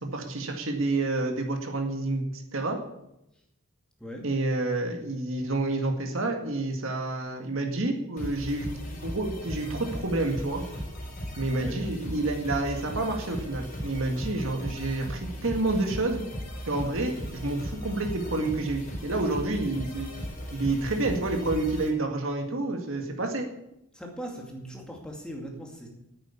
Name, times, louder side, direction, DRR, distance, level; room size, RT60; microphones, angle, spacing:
voice 1, 0.0-2.8 4.2-10.6 11.4-16.2 16.7-20.2 20.5-23.5, right 2 dB, 60° right, 3 dB, 2.0 m, -29 dB
sound 1, 8.2-21.9, equal, 40° left, 4.3 m, -37 dB
voice 2, 23.9-25.9, equal, 5° left, 0 dB, 2.3 m, -39 dB
9.5 x 8.9 x 9.7 m, 0.84 s
head